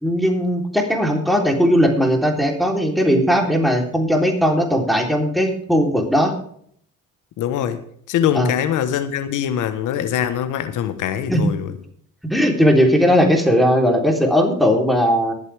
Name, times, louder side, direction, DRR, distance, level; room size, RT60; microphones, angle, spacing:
voice 1, 0.0-6.3 8.3-8.5 11.3-11.5 12.3-15.3, equal, ahead, 1 dB, 3.6 m, -18 dB
voice 2, 7.4-7.8 8.1-11.7, left 9 dB, 85° left, 10 dB, 1.3 m, -23 dB
22.5 x 8.2 x 3.5 m, 0.63 s
cardioid pair, 90°, 30 cm